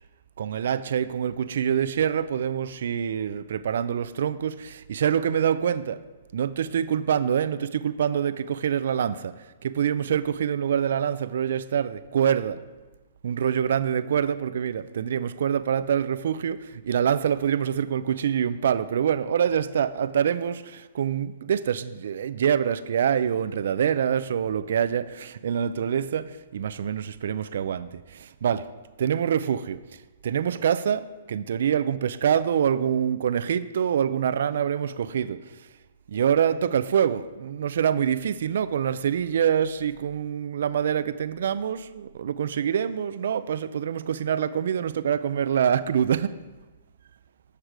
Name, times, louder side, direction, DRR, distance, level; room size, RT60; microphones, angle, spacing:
voice 1, 0.4-6.0 6.3-12.6 13.2-28.7 29.0-29.8 30.2-35.5 36.1-46.4, right 8 dB, 65° right, 0.4 m, -25 dB
10.0 x 6.6 x 4.7 m
hypercardioid pair, 155°, 0 cm